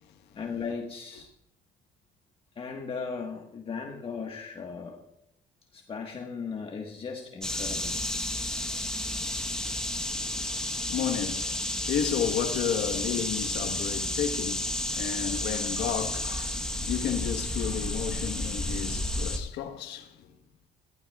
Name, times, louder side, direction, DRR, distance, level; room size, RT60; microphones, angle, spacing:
voice 1, 0.3-1.3 2.5-5.0 5.7-8.0, left 5 dB, 35° left, 1.4 m, -37 dB
sound 1, 7.4-19.4, left 1 dB, 5° left, 1.1 m, -31 dB
voice 2, 9.9-20.3, left 9 dB, 85° left, 1.3 m, -33 dB
19.5 x 15.0 x 2.4 m
cardioid pair, 110°, 17 cm